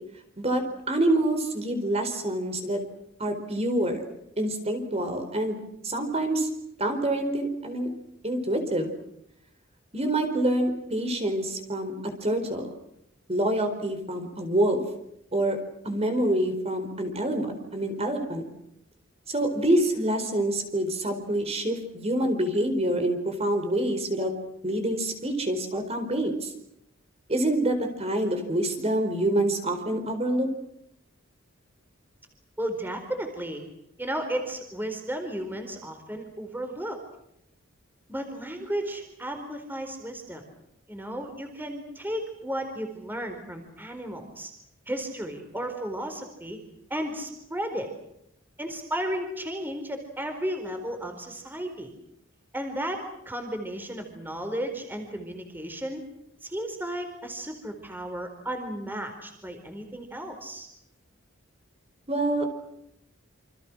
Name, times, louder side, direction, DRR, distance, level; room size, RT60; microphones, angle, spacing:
voice 1, 0.4-2.8 3.2-4.0 4.4-5.6 5.8-6.5 6.8-7.9 8.2-8.9 9.9-12.7 13.3-14.8 15.3-15.6 15.8-18.5 19.3-24.3 24.6-26.5 27.3-30.5 62.1-62.5, right 1 dB, 30° right, 6 dB, 4.5 m, -26 dB
voice 2, 32.6-33.6 34.0-37.0 38.1-40.4 40.9-44.5 44.9-46.6 46.9-47.9 48.6-51.9 52.5-56.0 56.4-60.7, right 1 dB, 10° right, 5 dB, 4.4 m, -34 dB
29.0 x 27.0 x 6.3 m, 0.77 s
head